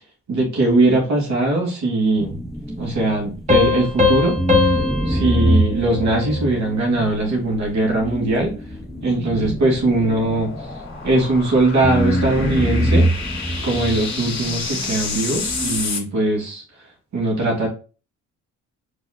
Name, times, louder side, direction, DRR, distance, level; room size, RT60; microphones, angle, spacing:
voice 1, 0.3-2.4 2.8-4.7 5.1-8.5 9.0-10.7 11.0-13.1 13.6-16.6 17.1-17.7, right 2 dB, 65° right, 0 dB, 2.6 m, -20 dB
sound 1, 2.2-4.0 4.4-11.4 11.8-15.8, right 1 dB, ahead, 0.3 m, -24 dB
sound 2, 3.5-6.8, left 4 dB, 25° right, 1.5 m, -21 dB
sound 3, 8.5-16.0, left 4 dB, 40° left, 1.8 m, -31 dB
5.2 x 4.0 x 2.3 m, 0.35 s
cardioid pair, 90°, 30 cm